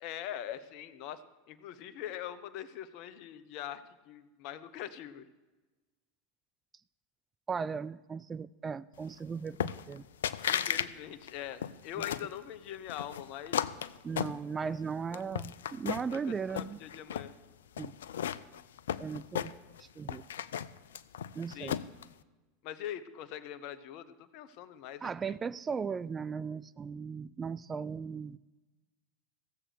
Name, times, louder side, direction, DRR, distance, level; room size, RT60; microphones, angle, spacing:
voice 1, 0.0-1.2 1.5-5.3 10.5-13.7 15.1-15.2 16.1-17.3 21.5-21.8 22.6-25.4, left 11 dB, 55° left, 14 dB, 0.8 m, -42 dB
voice 2, 7.5-10.1 14.0-16.8 17.8-17.9 19.0-19.5 19.8-20.2 21.3-21.8 25.0-28.4, right 6 dB, 25° right, 18 dB, 0.3 m, -37 dB
sound 1, 9.6-10.0 10.2-10.9 11.2-12.3 12.9-14.8 15.1-16.2 16.5-17.3 17.8-19.8 20.1-22.0, left 9 dB, 75° left, 0.4 m, -34 dB
15.5 x 7.4 x 6.8 m, 1.2 s
hypercardioid pair, 85°, 0 cm